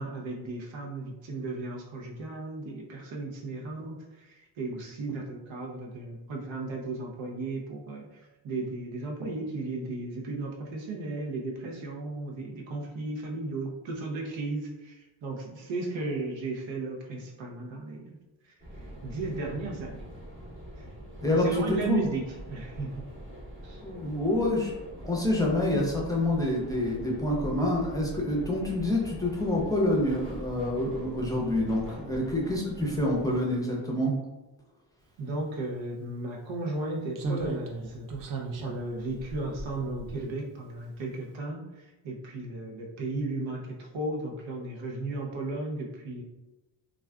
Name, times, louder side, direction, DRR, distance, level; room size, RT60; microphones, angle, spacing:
voice 1, 0.0-18.2 18.7-20.0 20.8-20.9 21.3-22.2 22.5-23.0 23.6-23.8 35.2-46.2, right 2 dB, 85° right, 0 dB, 0.7 m, -35 dB
sound 1, 18.6-33.4, right 1 dB, 25° right, 0.9 m, -43 dB
voice 2, 21.2-22.0 23.8-24.7 25.0-34.1, left 1 dB, 10° left, -3 dB, 0.6 m, -27 dB
Slam, 35.8-35.9 37.2-40.7 41.0-41.1, right 3 dB, 45° right, 0.5 m, -37 dB
2.4 x 2.3 x 3.3 m, 1.1 s
cardioid pair, 105°, 45 cm